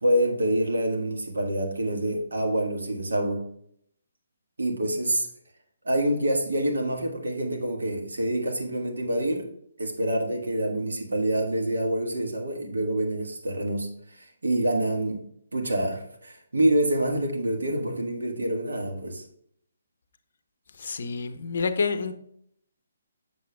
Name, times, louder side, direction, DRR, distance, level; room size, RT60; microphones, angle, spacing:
voice 1, 0.0-3.5 4.6-5.3 5.8-9.5 9.8-15.2 15.5-19.2, right 1 dB, 75° right, 2 dB, 1.3 m, -26 dB
voice 2, 20.8-22.1, left 4 dB, 60° left, 10 dB, 0.6 m, -28 dB
6.8 x 6.5 x 2.2 m, 0.69 s
figure-of-eight pair, 140°, 0 cm